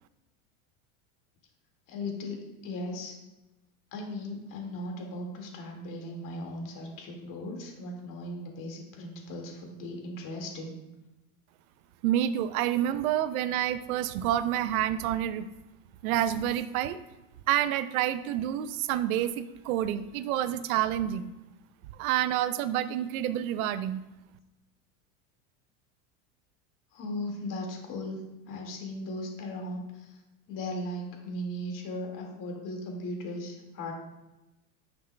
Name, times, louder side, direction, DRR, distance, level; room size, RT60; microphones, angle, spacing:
voice 1, 1.9-2.4 2.6-3.1 3.9-10.8 26.9-28.2 28.5-30.2 30.5-33.9, left 1 dB, 45° left, 1 dB, 2.1 m, -37 dB
voice 2, 12.0-15.4 16.0-17.0 17.5-21.3 21.9-24.0, right 11 dB, 75° right, 13 dB, 0.6 m, -28 dB
9.8 x 5.9 x 2.3 m, 1.0 s
supercardioid pair, 105°, 43 cm